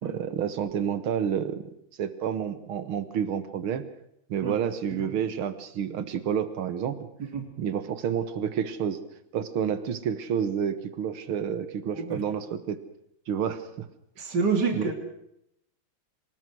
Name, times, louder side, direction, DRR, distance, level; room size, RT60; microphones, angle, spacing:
voice 1, 0.0-1.7 2.0-3.8 4.3-7.1 7.6-9.0 9.3-12.8 13.3-13.9 14.7-14.9, right 8 dB, 90° right, 12 dB, 2.3 m, -29 dB
voice 2, 14.2-14.9, right 4 dB, 55° right, 4 dB, 3.7 m, -28 dB
24.5 x 20.0 x 6.3 m, 0.77 s
omnidirectional pair, 2.2 m